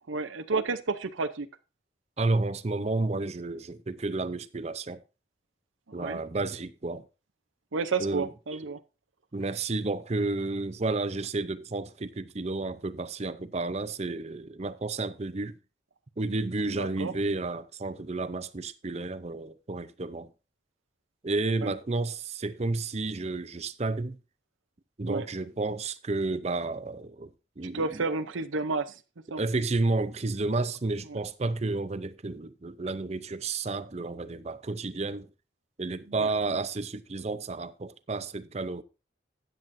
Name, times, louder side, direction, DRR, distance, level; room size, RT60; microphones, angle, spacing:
voice 1, 0.1-1.5 5.9-6.2 7.7-8.8 16.6-17.1 21.6-21.7 25.1-25.3 27.6-29.0 29.3-29.4 31.1-31.2 36.1-36.3, right 4 dB, 80° right, 0.7 m, -31 dB
voice 2, 2.2-5.0 5.9-7.1 8.0-8.3 9.3-15.6 16.2-20.3 21.2-24.2 25.0-28.0 29.4-35.3 35.8-38.8, right 3 dB, 35° right, 0.6 m, -31 dB
13.5 x 9.2 x 2.6 m
head